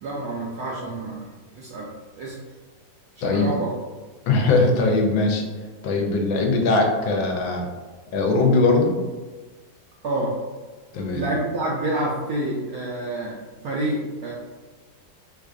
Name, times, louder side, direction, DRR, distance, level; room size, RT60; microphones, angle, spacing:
voice 1, 0.0-1.9 2.2-2.4 3.2-3.7 10.0-10.3 11.1-14.3, right 1 dB, 75° right, -4 dB, 0.8 m, -28 dB
voice 2, 3.2-3.5 4.3-5.4 5.8-7.7 8.1-8.9 10.9-11.2, left 3 dB, 90° left, 1 dB, 1.4 m, -20 dB
4.7 x 2.4 x 2.5 m, 1.3 s
omnidirectional pair, 2.1 m